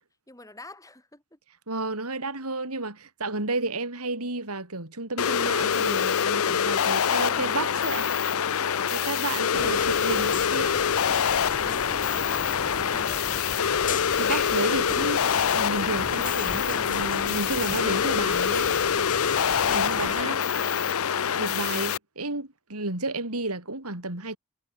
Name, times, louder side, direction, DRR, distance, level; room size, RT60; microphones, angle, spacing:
voice 1, 0.3-1.4 7.0-7.4 8.6-9.2 9.5-9.9 11.6-13.3, left 2 dB, 15° left, 6.0 m, -46 dB
voice 2, 1.7-8.1 8.9-10.8 12.9-13.1 14.2-18.8 19.7-20.4 21.4-24.4, right 2 dB, 85° right, 5.1 m, -32 dB
sound 1, 5.2-22.0, left 7 dB, 70° left, 0.6 m, -25 dB
sound 2, 9.5-20.2, left 4 dB, 35° left, 3.1 m, -36 dB
head